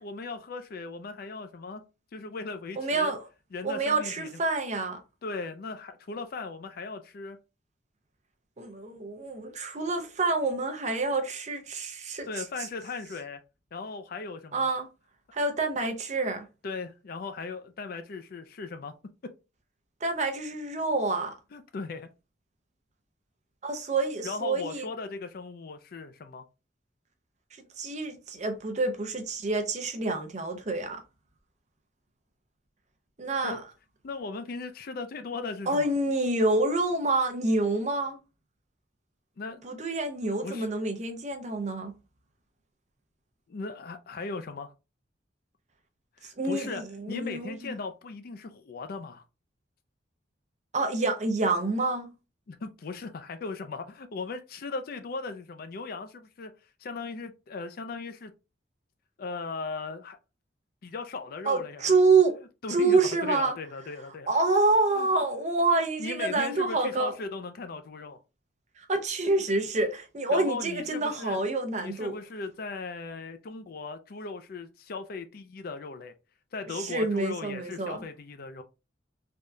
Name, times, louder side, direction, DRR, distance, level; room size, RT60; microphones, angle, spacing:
voice 1, 0.0-1.8 2.1-3.1 3.5-4.3 5.2-7.4 12.3-13.4 13.7-14.7 16.6-18.9 19.2-19.3 21.5-22.1 24.2-26.4 33.4-33.6 34.0-35.9 39.4-39.6 40.4-40.7 43.5-44.7 46.2-46.8 47.1-49.2 52.5-56.5 56.8-58.3 59.2-60.2 60.8-61.9 62.6-64.3 65.0-65.1 66.0-68.2 70.3-71.4 71.8-76.1 76.5-78.6, left 4 dB, 50° left, 0.4 m, -38 dB
voice 2, 2.8-3.3 3.6-5.0 8.6-12.4 14.5-14.9 15.3-16.5 20.0-21.3 23.6-24.8 27.8-31.0 33.2-33.6 35.7-38.2 39.6-41.9 46.4-47.7 50.7-52.1 61.5-62.4 62.7-63.6 64.3-67.1 68.8-72.2 76.7-78.0, right 3 dB, 40° right, 0.6 m, -27 dB
3.4 x 2.3 x 2.6 m
head